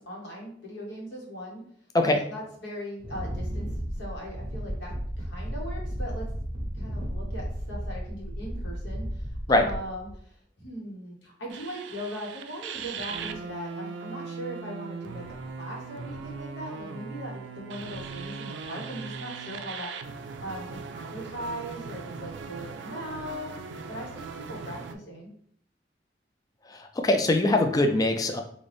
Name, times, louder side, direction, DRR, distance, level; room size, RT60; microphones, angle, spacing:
voice 1, 0.0-1.6 2.0-6.3 6.7-9.2 9.5-10.1 10.6-19.9 20.4-23.6 23.9-25.3, equal, 70° left, -3 dB, 1.3 m, -39 dB
Wind, 3.0-10.2, equal, 25° right, 0.9 m, -34 dB
sound 1, 11.5-24.9, right 5 dB, 70° right, 0.4 m, -39 dB
voice 2, 26.7-28.4, left 2 dB, 20° left, 5 dB, 0.3 m, -22 dB
3.8 x 2.6 x 3.4 m, 0.64 s
head